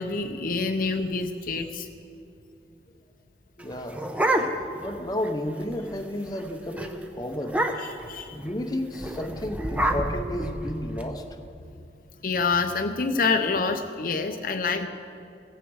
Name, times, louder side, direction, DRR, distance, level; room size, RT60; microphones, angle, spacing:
voice 1, 0.0-1.9 7.8-8.4 12.2-14.9, left 4 dB, 50° left, 6 dB, 0.7 m, -27 dB
voice 2, 3.6-4.0 4.7-7.7 8.3-11.2, left 1 dB, 20° left, 5 dB, 0.8 m, -32 dB
sound 1, 3.6-4.9 5.2-5.3 5.6-5.9 6.3-6.5 6.8-6.9 7.4-8.1 8.9-11.0, right 1 dB, 10° right, 0.8 m, -27 dB
15.5 x 15.5 x 4.7 m, 2.8 s
head